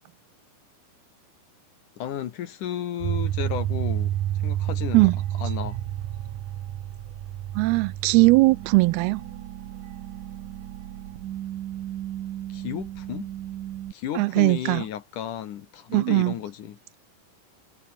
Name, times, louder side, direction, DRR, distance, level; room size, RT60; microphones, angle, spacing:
voice 1, 2.0-4.1 4.4-5.1 5.4-5.8 12.5-13.3 13.9-16.8, left 10 dB, 60° left, 2.5 m, -33 dB
sound 1, 3.0-13.9, right 12 dB, 60° right, 2.4 m, -31 dB
voice 2, 7.6-9.3 14.2-14.8 15.9-16.3, right 23 dB, 85° right, 2.4 m, -19 dB
omnidirectional pair, 4.7 m